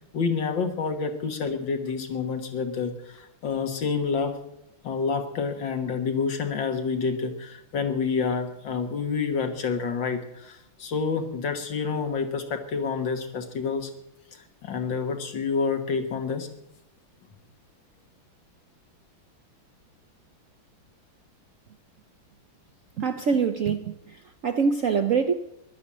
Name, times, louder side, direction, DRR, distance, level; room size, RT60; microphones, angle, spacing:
voice 1, 0.1-4.3 4.8-13.9 14.6-16.5, left 5 dB, 65° left, 2.1 m, -28 dB
voice 2, 23.0-25.3, right 6 dB, 65° right, 0.8 m, -25 dB
14.0 x 11.5 x 7.4 m
omnidirectional pair, 2.2 m